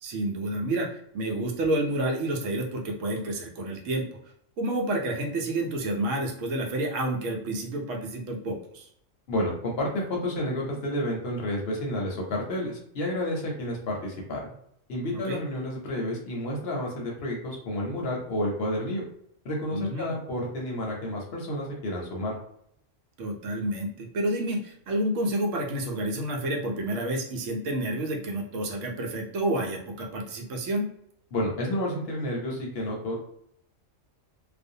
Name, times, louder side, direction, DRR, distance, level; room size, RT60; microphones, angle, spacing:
voice 1, 0.0-4.1 4.6-8.9 15.2-15.4 19.7-20.1 23.2-30.9, right 1 dB, 75° right, 0 dB, 1.0 m, -29 dB
voice 2, 9.3-14.5 14.9-19.0 19.4-22.4 31.3-33.2, left 1 dB, 60° left, -1 dB, 0.8 m, -30 dB
2.5 x 2.1 x 2.6 m, 0.70 s
omnidirectional pair, 1.3 m